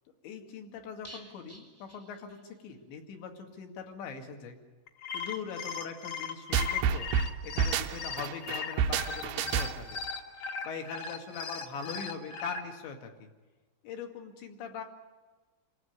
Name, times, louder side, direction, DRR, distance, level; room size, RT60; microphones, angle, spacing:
voice 1, 0.2-4.6 5.1-7.1 7.4-10.0 10.6-13.3 13.8-14.8, left 6 dB, 65° left, 4 dB, 4.4 m, -41 dB
sound 1, 1.0-2.8 3.1-3.2 3.5-3.6, right 1 dB, 5° left, 1.4 m, -53 dB
sound 2, 4.9-12.6, left 6 dB, 45° left, 2.7 m, -38 dB
sound 3, 6.5-10.0, right 7 dB, 80° right, 2.3 m, -29 dB
28.0 x 15.5 x 9.6 m, 1.3 s
omnidirectional pair, 5.7 m